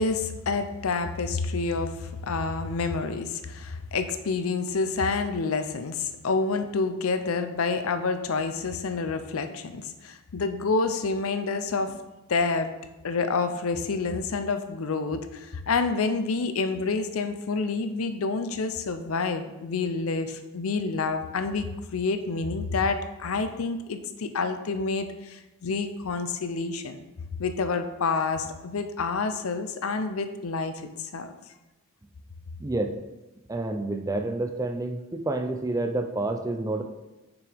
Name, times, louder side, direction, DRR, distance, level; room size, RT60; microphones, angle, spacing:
voice 1, 0.0-12.0 12.3-12.7 13.0-27.0 27.4-31.3, left 4 dB, 80° left, 9 dB, 0.6 m, -28 dB
voice 2, 32.6-32.9 33.5-36.8, right 2 dB, 15° right, 5 dB, 0.4 m, -29 dB
6.7 x 6.0 x 3.5 m, 1.0 s
head